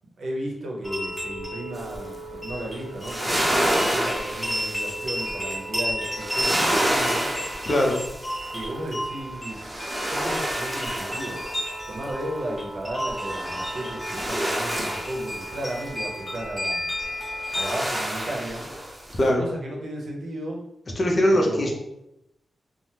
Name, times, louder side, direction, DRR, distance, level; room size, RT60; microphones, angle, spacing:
voice 1, 0.2-7.3 8.5-9.7 9.9-11.4 11.9-16.8 17.5-18.6 19.3-20.6 21.3-21.8, right 1 dB, 75° right, -1 dB, 0.7 m, -34 dB
sound 1, 0.8-17.8, equal, 20° left, 1.2 m, -33 dB
sound 2, 1.7-2.2 2.7-5.5 6.1-8.9 9.3-12.3 13.2-15.9 17.2-19.3, right 1 dB, 25° right, 0.7 m, -29 dB
voice 2, 7.6-8.0 19.2-19.5 21.0-21.8, equal, 40° left, 0 dB, 0.6 m, -21 dB
3.3 x 2.0 x 2.9 m, 0.82 s
wide cardioid pair, 90°, 0 cm